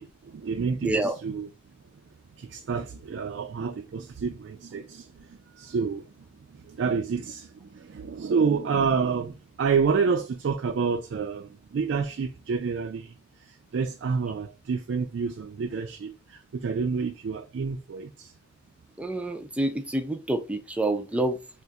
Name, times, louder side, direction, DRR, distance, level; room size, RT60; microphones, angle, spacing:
voice 1, 0.0-1.5 2.4-5.1 5.6-6.1 6.7-13.1 13.7-18.3, right 5 dB, 85° right, 0.4 m, -28 dB
voice 2, 0.8-1.2 19.0-21.4, right 2 dB, 5° right, 0.4 m, -27 dB
2.5 x 2.4 x 4.0 m
head